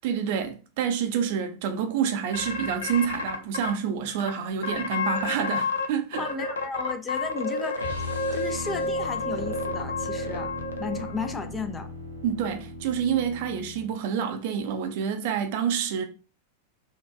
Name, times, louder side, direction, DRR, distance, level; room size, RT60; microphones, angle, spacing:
voice 1, 0.0-6.2 12.2-16.0, right 7 dB, 50° right, 0.5 m, -28 dB
sound 1, 2.3-3.7 4.2-4.3 4.6-5.9 6.1-11.3, left 3 dB, 70° left, 0.5 m, -30 dB
voice 2, 6.2-7.9 8.3-11.9, left 4 dB, 15° left, 0.5 m, -34 dB
sound 2, 7.8-13.9, equal, 90° left, 0.9 m, -38 dB
3.9 x 2.3 x 2.5 m
figure-of-eight pair, 90°, 0 cm